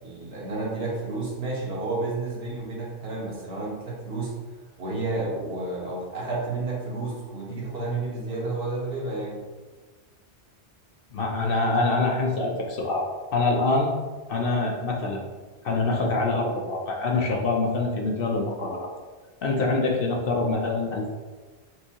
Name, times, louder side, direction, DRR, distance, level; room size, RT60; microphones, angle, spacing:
voice 1, 0.0-4.3 4.8-9.4, right 3 dB, 60° right, -4 dB, 1.3 m, -31 dB
voice 2, 11.1-13.1 13.3-13.9 14.3-15.2 15.6-18.9 19.4-21.1, left 3 dB, 60° left, 0 dB, 0.7 m, -25 dB
5.9 x 2.7 x 2.8 m, 1.4 s
omnidirectional pair, 1.2 m